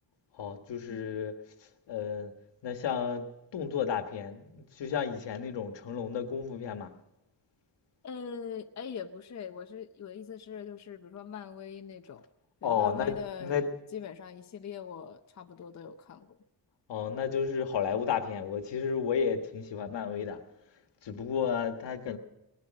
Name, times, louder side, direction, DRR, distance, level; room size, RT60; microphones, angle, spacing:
voice 1, 0.3-1.4 1.9-2.3 2.6-6.9 12.6-13.7 16.9-20.4 21.0-22.2, left 7 dB, 85° left, 1.5 m, -32 dB
voice 2, 8.0-12.2 12.6-13.6 13.9-16.4, left 7 dB, 40° left, 0.7 m, -42 dB
19.0 x 11.5 x 6.4 m
wide cardioid pair, 170°, 42 cm